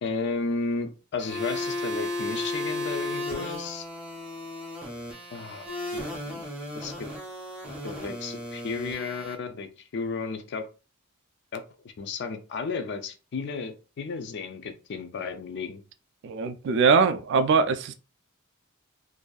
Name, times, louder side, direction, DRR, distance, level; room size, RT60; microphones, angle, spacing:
voice 1, 0.0-3.9 5.3-6.5 6.7-7.1 7.8-10.7 11.5-15.8, left 4 dB, 55° left, 0.4 m, -33 dB
sound 1, 1.2-9.3, left 1 dB, 5° right, 0.6 m, -34 dB
voice 2, 16.2-17.9, right 5 dB, 55° right, 0.3 m, -22 dB
2.6 x 2.3 x 2.3 m
head